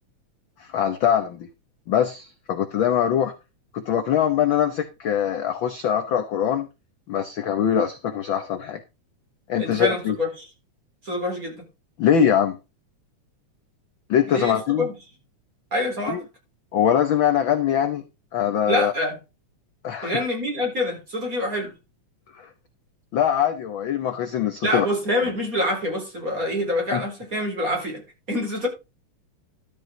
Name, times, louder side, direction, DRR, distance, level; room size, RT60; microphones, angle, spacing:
voice 1, 0.6-1.5 1.9-3.3 3.7-6.7 7.1-8.8 9.5-10.2 12.0-12.6 14.1-14.9 16.1-16.2 16.7-18.0 18.3-18.9 19.8-20.2 22.3-22.5 23.1-24.9 26.9-27.0, left 9 dB, 70° left, 1.2 m, -22 dB
voice 2, 9.6-10.5 11.0-11.6 14.3-14.9 15.7-16.2 18.7-19.2 20.0-21.7 24.6-28.0 28.3-28.7, left 1 dB, 25° right, 4.4 m, -26 dB
12.5 x 7.9 x 3.8 m
omnidirectional pair, 3.5 m